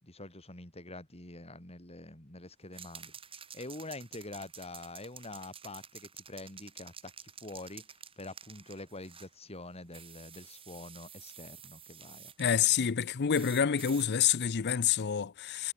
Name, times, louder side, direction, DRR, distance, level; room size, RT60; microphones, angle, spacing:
voice 1, 0.0-3.1 3.5-7.9 8.2-12.3, left 2 dB, 30° left, 5.7 m, -46 dB
sound 1, 2.7-9.3 9.9-12.4 13.3-14.1, right 7 dB, 25° right, 2.3 m, -50 dB
voice 2, 12.4-15.7, left 8 dB, 50° left, 0.6 m, -28 dB
head